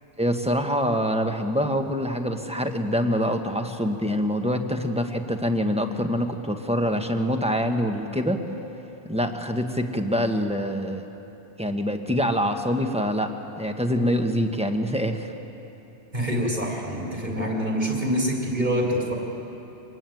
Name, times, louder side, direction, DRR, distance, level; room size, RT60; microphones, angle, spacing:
voice 1, 0.2-8.4 9.1-11.0 11.6-15.3, equal, 5° right, 5 dB, 1.4 m, -25 dB
voice 2, 16.1-19.2, equal, 45° right, -1 dB, 4.3 m, -25 dB
25.5 x 20.5 x 9.4 m, 3.0 s
omnidirectional pair, 1.1 m